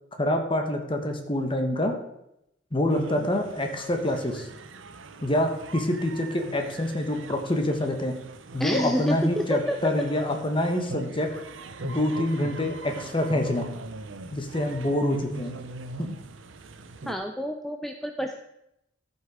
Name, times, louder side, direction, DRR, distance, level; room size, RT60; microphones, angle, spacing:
voice 1, 0.2-1.9 2.7-4.5 5.2-8.1 8.5-11.3 11.8-13.7 14.3-15.5 16.0-16.1, left 1 dB, 25° left, 4 dB, 1.3 m, -26 dB
sound 1, 2.9-17.1, right 3 dB, 90° right, 0.7 m, -40 dB
voice 2, 8.6-9.8 17.1-18.4, equal, ahead, 4 dB, 0.5 m, -28 dB
13.5 x 5.6 x 4.8 m, 0.83 s
head